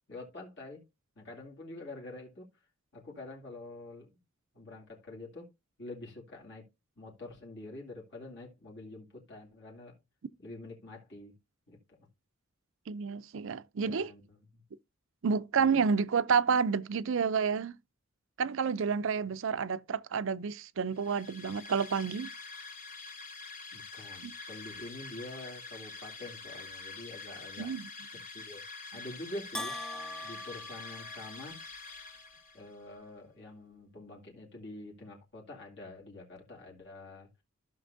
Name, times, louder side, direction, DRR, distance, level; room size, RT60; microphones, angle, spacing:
voice 1, 0.1-0.8 1.2-2.5 2.9-4.1 4.5-5.5 5.8-6.7 7.0-10.0 10.4-11.3 11.7-12.0 13.8-14.6 15.6-15.8 23.7-28.6 28.9-29.8 30.2-31.6 32.5-37.3, left 2 dB, 60° left, 2.5 m, -46 dB
voice 2, 12.9-14.1 15.2-17.7 18.4-22.3 24.2-24.3 27.6-27.9, right 6 dB, 65° right, 0.5 m, -29 dB
sound 1, 20.9-32.7, left 4 dB, 40° left, 1.9 m, -46 dB
Bell, 29.5-31.7, left 1 dB, 5° left, 0.5 m, -41 dB
14.5 x 5.9 x 2.6 m
head